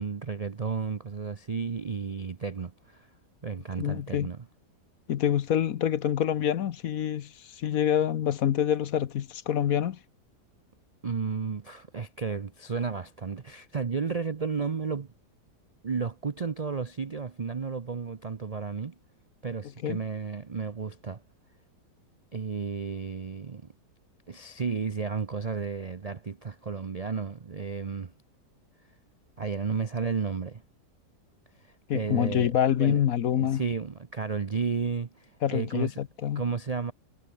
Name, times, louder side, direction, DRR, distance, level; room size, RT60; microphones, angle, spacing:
voice 1, 0.0-3.1 3.4-4.4 11.0-15.1 15.8-18.9 19.4-21.2 22.3-23.7 24.3-28.1 29.4-30.6 31.9-33.0 33.3-35.9 36.4-36.9, right 5 dB, 60° right, 0.4 m, -32 dB
voice 2, 3.8-4.3 5.1-10.0 19.8-20.0 31.9-33.6 35.4-36.4, left 10 dB, 60° left, 1.2 m, -26 dB
omnidirectional pair, 1.8 m